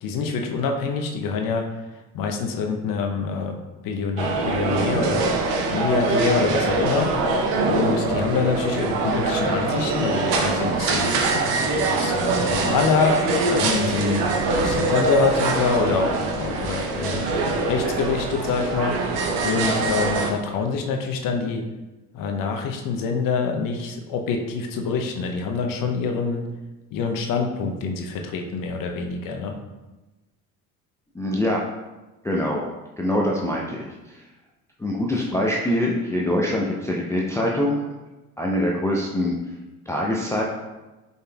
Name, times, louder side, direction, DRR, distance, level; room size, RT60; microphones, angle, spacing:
voice 1, 0.0-1.7 2.1-3.6 3.8-5.2 5.7-11.5 11.9-17.3 17.7-19.0 19.4-21.6 22.1-26.4 26.9-29.6, left 5 dB, 50° left, 4 dB, 0.7 m, -25 dB
sound 1, 4.2-20.3, right 3 dB, 60° right, 0.8 m, -23 dB
voice 2, 31.1-31.6 32.2-32.6 33.0-34.2 34.8-37.8 38.4-39.3 39.9-40.4, left 1 dB, 5° left, -3 dB, 0.5 m, -24 dB
5.3 x 4.0 x 2.3 m, 1.1 s
hypercardioid pair, 60°, 44 cm